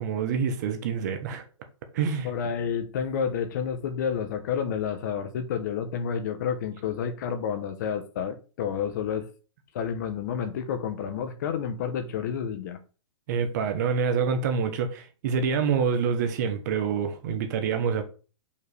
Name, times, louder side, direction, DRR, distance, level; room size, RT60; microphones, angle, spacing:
voice 1, 0.0-1.4 1.9-2.3 13.3-18.0, right 6 dB, 35° right, 1.1 m, -26 dB
voice 2, 2.2-9.3 9.7-12.8, left 7 dB, 40° left, 0.9 m, -30 dB
5.4 x 4.7 x 4.8 m
hypercardioid pair, 170°, 15 cm